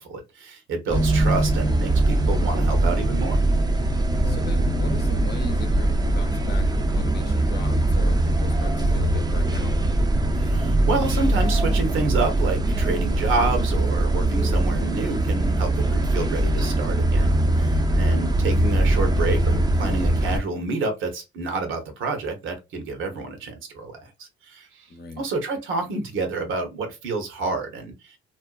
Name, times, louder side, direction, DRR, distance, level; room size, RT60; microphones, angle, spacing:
voice 1, 0.0-3.4 10.3-24.9 25.2-28.2, right 3 dB, 70° right, 1.0 m, -29 dB
sound 1, 0.9-20.4, right 1 dB, 20° right, 0.5 m, -21 dB
voice 2, 4.2-9.7 18.0-18.4 24.9-25.2, left 4 dB, 50° left, 0.7 m, -38 dB
2.6 x 2.2 x 2.3 m
supercardioid pair, 75°, 21 cm